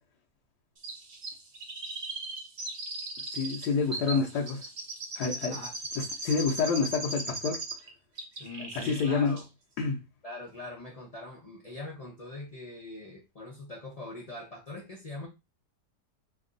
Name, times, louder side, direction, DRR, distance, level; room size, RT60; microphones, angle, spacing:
Chirp tweet, 0.8-7.9 8.2-9.1 9.4-9.5, right 2 dB, 45° right, 0.9 m, -38 dB
voice 1, 3.3-4.6 5.1-5.6 6.0-7.6 8.7-9.4 9.8-10.0, left 5 dB, 75° left, 1.3 m, -28 dB
voice 2, 3.9-4.2 5.5-5.7 8.4-9.4 10.2-15.3, left 2 dB, 45° left, 0.5 m, -42 dB
3.4 x 2.3 x 3.7 m
omnidirectional pair, 1.8 m